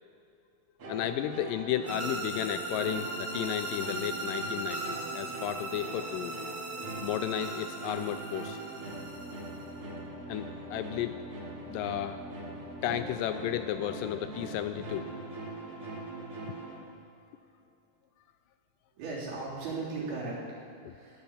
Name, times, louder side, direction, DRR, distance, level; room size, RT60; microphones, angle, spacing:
sound 1, 0.8-16.8, right 2 dB, 40° right, 3.7 m, -41 dB
voice 1, 0.9-6.4 7.0-8.6 10.3-11.2 11.7-12.2 12.8-15.1 16.5-16.6 20.9-21.0, left 12 dB, 85° left, 10 dB, 1.9 m, -33 dB
sound 2, 1.9-9.8, right 2 dB, ahead, 3.4 m, -39 dB
voice 2, 19.0-21.2, right 3 dB, 85° right, -7 dB, 5.4 m, -37 dB
15.5 x 11.5 x 7.3 m, 2.6 s
omnidirectional pair, 4.3 m